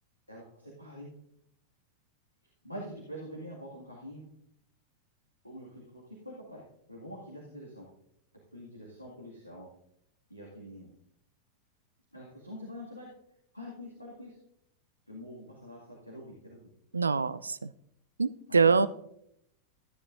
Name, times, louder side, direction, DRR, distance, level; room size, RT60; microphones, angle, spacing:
voice 1, 0.3-1.1 2.6-4.2 5.4-7.9 8.5-9.7 10.3-10.9 12.1-13.1 13.5-14.4 15.1-16.7 18.5-18.9, equal, 85° left, -4 dB, 2.1 m, -45 dB
voice 2, 16.9-17.7 18.2-18.9, right 4 dB, 75° right, 15 dB, 0.4 m, -25 dB
15.5 x 9.9 x 2.6 m, 0.77 s
figure-of-eight pair, 90°, 0 cm